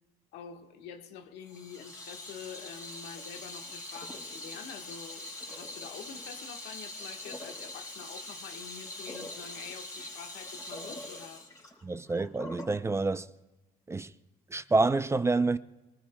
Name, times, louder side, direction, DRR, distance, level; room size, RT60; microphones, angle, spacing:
voice 1, 0.3-11.5, left 7 dB, 90° left, 1.3 m, -46 dB
Water tap faucet / Sink (filling or washing), 1.5-12.8, left 1 dB, 20° left, 4.2 m, -43 dB
voice 2, 11.8-13.3 13.9-14.1 14.5-15.6, right 3 dB, 15° right, 0.4 m, -27 dB
24.5 x 19.0 x 2.2 m
cardioid pair, 110°, 17 cm